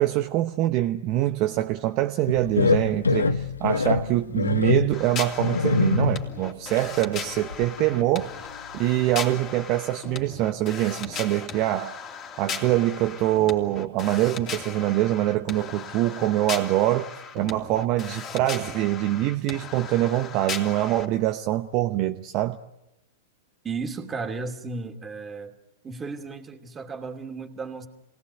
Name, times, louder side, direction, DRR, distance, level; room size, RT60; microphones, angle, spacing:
voice 1, 0.0-8.3 8.7-12.0 12.4-22.6, right 15 dB, 45° right, 7 dB, 0.9 m, -24 dB
sound 1, 2.3-6.4 6.8-6.9 7.4-8.1 8.4-8.5 8.9-9.0, left 3 dB, 85° left, 0.9 m, -24 dB
sound 2, 4.9-21.0, left 6 dB, 30° left, 2.9 m, -37 dB
voice 2, 23.6-25.5 25.8-27.9, right 4 dB, 20° right, 4 dB, 2.7 m, -34 dB
27.0 x 19.0 x 8.3 m, 0.92 s
figure-of-eight pair, 105°, 0 cm